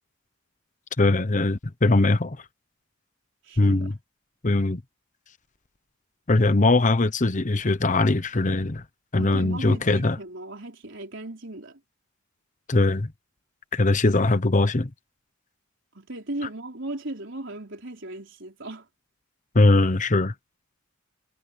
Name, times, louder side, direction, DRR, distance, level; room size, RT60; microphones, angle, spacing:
voice 1, 1.0-2.4 3.6-3.9 4.4-4.8 6.3-8.8 9.1-10.1 12.7-13.1 13.7-14.9 19.5-20.3, left 2 dB, 35° left, 0.9 m, -21 dB
voice 2, 3.4-3.9 9.2-11.8 15.9-18.9, right 1 dB, 55° right, 4.4 m, -37 dB
head